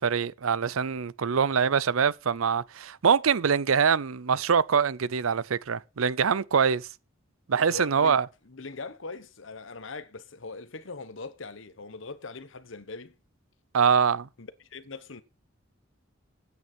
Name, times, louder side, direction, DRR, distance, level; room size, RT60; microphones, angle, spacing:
voice 1, 0.0-6.9 7.5-8.3 13.7-14.3, right 6 dB, 90° right, 0.6 m, -24 dB
voice 2, 7.7-8.2 8.4-13.1 14.4-15.2, left 3 dB, 65° left, 1.1 m, -41 dB
14.0 x 9.3 x 4.4 m
head